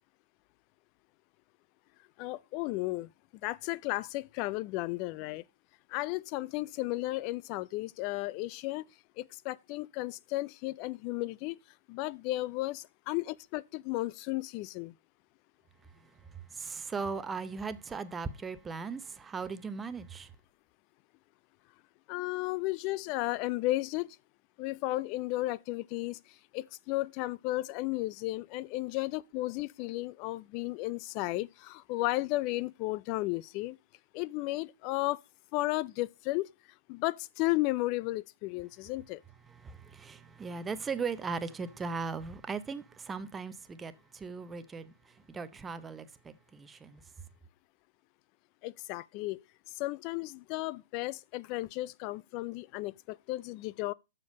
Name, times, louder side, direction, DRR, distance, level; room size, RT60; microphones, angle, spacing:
voice 1, 2.2-3.1 3.4-5.4 5.9-8.8 9.2-11.6 11.9-14.9 22.1-24.2 24.6-26.2 26.5-33.8 34.1-35.2 35.5-36.5 36.9-39.2 48.6-49.4 49.7-53.9, left 19 dB, 35° left, 0.4 m, -34 dB
voice 2, 15.8-20.3 39.5-47.0, right 5 dB, 15° right, 0.7 m, -38 dB
7.0 x 6.7 x 5.3 m
hypercardioid pair, 130°, 0 cm